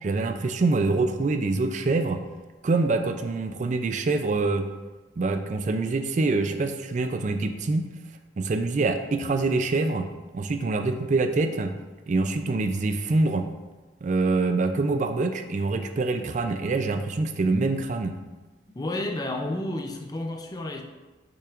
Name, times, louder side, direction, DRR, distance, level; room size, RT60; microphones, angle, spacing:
voice 1, 0.0-2.2 2.6-4.6 5.2-7.8 8.4-10.1 10.3-11.7 12.1-13.5 14.0-18.2, right 3 dB, 40° right, 7 dB, 0.3 m, -25 dB
voice 2, 18.8-20.8, left 1 dB, 20° left, 3 dB, 0.5 m, -31 dB
6.7 x 5.7 x 2.5 m, 1.2 s
head